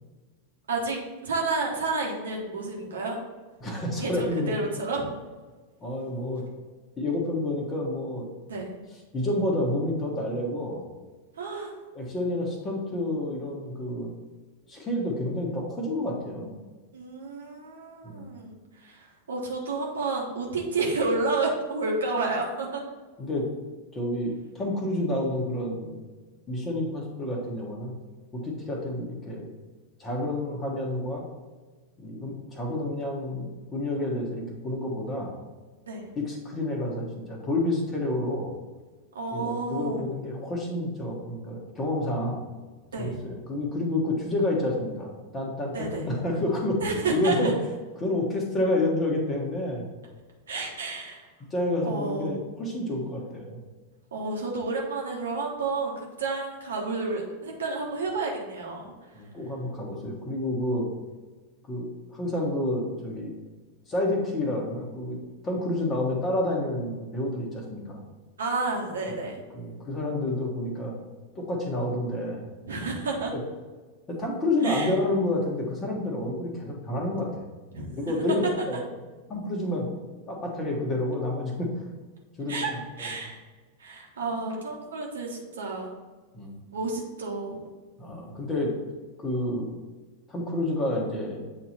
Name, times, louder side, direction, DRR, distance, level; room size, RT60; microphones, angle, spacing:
voice 1, 1.2-3.2 4.0-5.0 8.5-8.7 11.4-11.7 16.9-18.5 18.8-19.0 19.3-22.8 35.9-36.1 39.1-40.0 42.9-43.2 45.7-46.1 46.8-47.6 50.5-51.3 51.8-52.4 54.1-58.9 68.4-69.3 72.7-73.3 74.6-74.9 77.7-77.9 82.5-82.7 83.0-83.4 83.8-85.9 86.7-87.6, right 3 dB, 65° right, -1 dB, 1.2 m, -30 dB
voice 2, 3.6-4.6 5.8-6.5 7.0-8.3 9.1-10.8 11.9-14.1 14.7-16.5 18.0-18.3 23.2-23.5 23.9-26.0 26.5-28.0 28.3-29.5 30.0-31.2 32.0-35.3 36.1-38.5 39.3-42.4 43.0-47.5 48.0-49.9 51.5-53.6 59.1-60.9 61.6-63.3 63.9-65.2 65.4-68.0 69.1-69.2 69.5-70.9 71.3-72.4 73.3-73.4 74.1-77.4 78.0-78.8 79.3-79.9 80.3-81.7 82.4-83.2 86.3-86.6 88.0-88.7 89.2-89.7 90.3-91.4, left 1 dB, 25° left, -1 dB, 1.4 m, -29 dB
8.1 x 2.9 x 4.2 m, 1.3 s
figure-of-eight pair, 90°, 0 cm